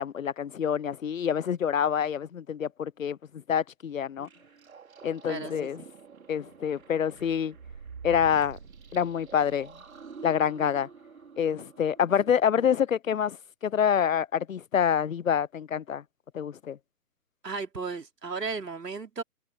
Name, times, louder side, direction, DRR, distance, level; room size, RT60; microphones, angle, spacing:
voice 1, 0.0-4.3 5.0-5.8 6.3-7.5 8.0-8.6 8.9-9.7 10.2-10.9 11.4-13.4 13.6-16.0 16.3-16.8, left 8 dB, 55° left, 0.7 m, -27 dB
sound 1, 4.2-12.7, right 5 dB, 60° right, 4.3 m, -47 dB
voice 2, 5.3-5.7 17.4-19.2, right 4 dB, 80° right, 3.8 m, -35 dB
hypercardioid pair, 160°, 48 cm